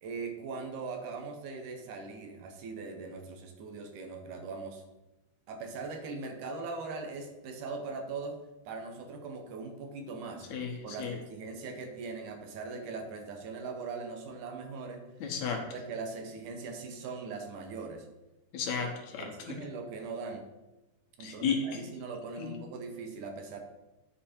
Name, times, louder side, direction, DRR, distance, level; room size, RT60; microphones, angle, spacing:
voice 1, 0.0-4.8 5.5-8.4 8.7-10.5 10.8-15.0 15.7-18.1 19.2-20.5 21.2-23.6, right 4 dB, 85° right, 4 dB, 2.6 m, -40 dB
voice 2, 15.2-15.6 18.5-19.3 21.2-21.7 22.4-22.5, left 6 dB, 70° left, 2 dB, 2.2 m, -32 dB
9.9 x 4.7 x 4.4 m, 1.0 s
omnidirectional pair, 3.5 m